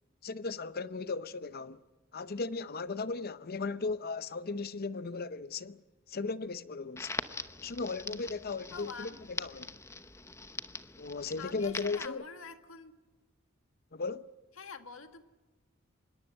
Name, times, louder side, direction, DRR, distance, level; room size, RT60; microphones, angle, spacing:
voice 1, 0.2-1.8 2.1-5.8 6.1-7.1 7.6-9.1 9.4-9.8 11.0-12.2 13.9-14.3, left 4 dB, 50° left, 0.8 m, -36 dB
Crackle, 7.0-12.1, left 3 dB, 15° left, 0.9 m, -42 dB
voice 2, 8.7-9.2 11.4-13.0 14.6-15.2, left 5 dB, 75° left, 1.8 m, -46 dB
25.0 x 21.0 x 7.8 m
head